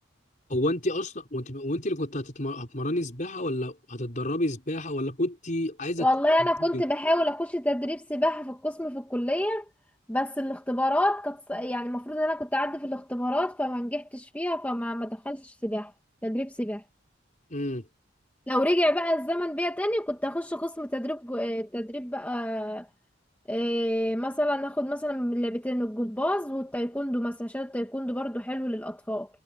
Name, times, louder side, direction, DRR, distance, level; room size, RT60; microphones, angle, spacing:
voice 1, 0.5-6.1 6.7-6.8 17.5-17.9, left 1 dB, 40° left, 5.4 m, -30 dB
voice 2, 6.0-9.7 10.1-15.9 16.2-16.8 18.5-22.9 23.5-29.3, left 1 dB, 10° left, 1.8 m, -28 dB
head